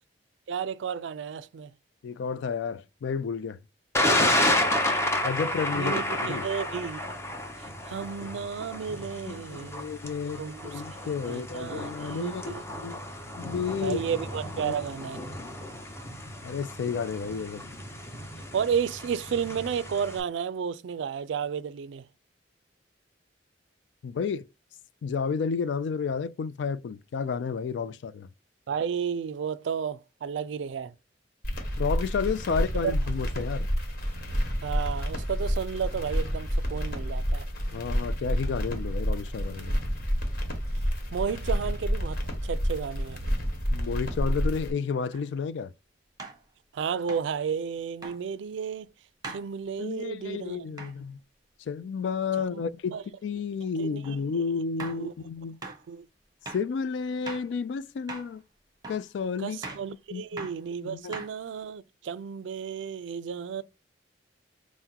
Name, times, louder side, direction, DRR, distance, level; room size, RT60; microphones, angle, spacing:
voice 1, 0.5-1.7 5.8-7.0 7.6-9.9 10.4-10.8 11.3-12.8 13.8-15.2 18.5-22.1 28.7-30.9 32.8-32.9 34.6-37.5 41.1-43.2 46.7-48.9 49.3-50.9 52.5-52.6 52.9-53.0 53.8-54.2 54.9-55.1 55.6-56.1 59.4-63.6, right 7 dB, 80° right, 0.3 m, -32 dB
voice 2, 2.0-3.6 5.2-5.9 6.3-6.5 9.2-12.6 12.8-13.0 13.4-14.0 14.6-14.7 16.4-17.6 24.0-24.5 25.0-28.3 31.8-33.7 37.7-39.8 43.7-45.7 49.8-51.2 51.6-55.6 56.5-58.4 58.9-59.6 60.1-60.5 60.8-61.2, left 5 dB, 75° left, 0.3 m, -31 dB
Thunder, 3.9-20.2, left 1 dB, 15° left, 0.7 m, -31 dB
sound 1, 31.4-44.7, equal, 55° left, 1.3 m, -29 dB
sound 2, 45.1-45.2 46.2-46.4 47.1-47.3 48.0-48.2 49.2-49.5 50.8-51.0 54.0-54.2 54.8-55.1 55.6-55.8 56.5-56.7 57.3-57.5 58.1-58.3 58.8-59.1 59.6-59.9 60.4-60.6 61.1-61.6, right 3 dB, 20° right, 0.9 m, -40 dB
5.7 x 2.1 x 2.8 m
head